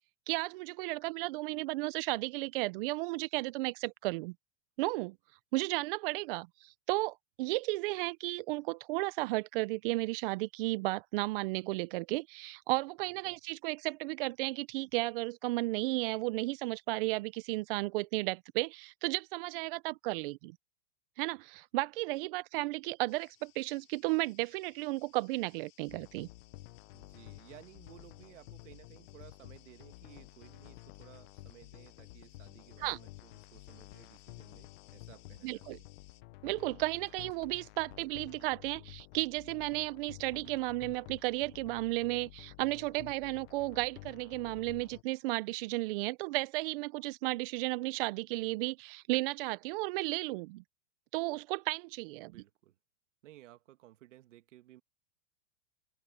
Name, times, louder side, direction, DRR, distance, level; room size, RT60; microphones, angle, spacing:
voice 1, 0.3-4.3 4.8-5.1 5.5-20.5 21.2-26.3 32.8-33.0 35.4-35.8 36.4-50.6 51.1-52.3, right 21 dB, 50° right, 0.6 m, -34 dB
sound 1, 23.1-36.2, left 15 dB, 35° left, 5.0 m, -65 dB
sound 2, 25.9-45.0, left 20 dB, 50° left, 0.7 m, -52 dB
voice 2, 26.9-35.9 37.9-38.1 52.3-52.8 53.2-54.8, right 14 dB, 75° right, 2.3 m, -57 dB
supercardioid pair, 145°, 37 cm